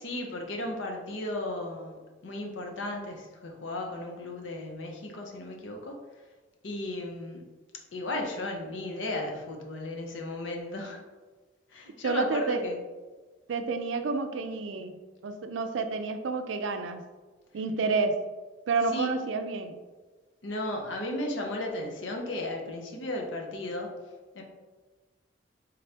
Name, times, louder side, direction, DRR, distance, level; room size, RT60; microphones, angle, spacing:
voice 1, 0.0-5.9 6.6-7.4 7.9-11.0 11.7-12.8 18.9-19.2 20.4-23.9 24.3-24.4, left 1 dB, 85° left, 2 dB, 0.7 m, -35 dB
voice 2, 12.0-12.6 13.5-15.0 15.2-17.0 17.5-18.2 18.7-19.8, right 4 dB, 85° right, 8 dB, 0.4 m, -29 dB
3.7 x 3.3 x 2.8 m, 1.3 s
head